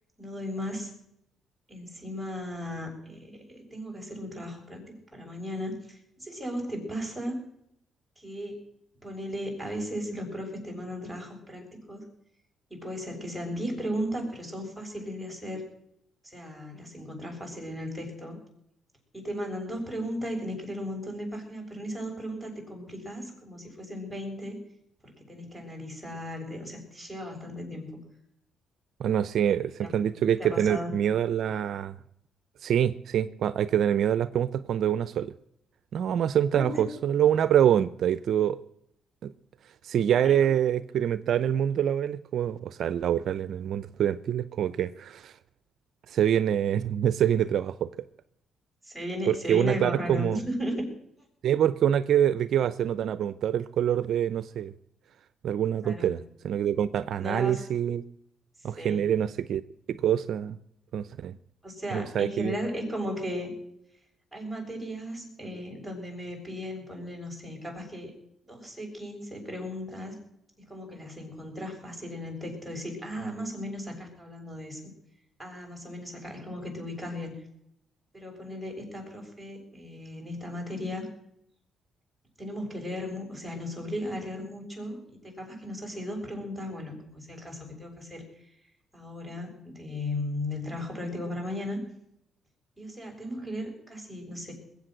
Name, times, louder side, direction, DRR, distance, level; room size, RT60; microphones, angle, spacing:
voice 1, 0.2-0.9 1.7-4.8 5.1-7.4 8.2-8.6 9.0-12.0 12.7-15.7 16.2-18.4 19.1-24.6 25.0-28.0 29.5-29.9 30.4-30.9 36.5-36.9 40.1-40.5 48.8-50.8 55.8-56.1 57.2-57.6 58.8-59.1 61.6-63.5 64.3-68.1 68.5-70.2 70.7-74.9 75.4-77.4 78.1-81.1 82.4-88.2 88.9-91.8 92.8-94.5, equal, 5° right, 0 dB, 7.3 m, -36 dB
voice 2, 29.0-32.0 32.6-35.3 35.9-38.6 39.2-39.3 39.8-45.3 46.1-47.9 49.3-50.4 51.4-54.7 55.4-58.0 58.6-59.6 59.9-60.6 60.9-61.4 61.9-62.5, right 9 dB, 65° right, 15 dB, 0.6 m, -25 dB
21.0 x 8.4 x 7.8 m, 0.76 s
cardioid pair, 90°, 0 cm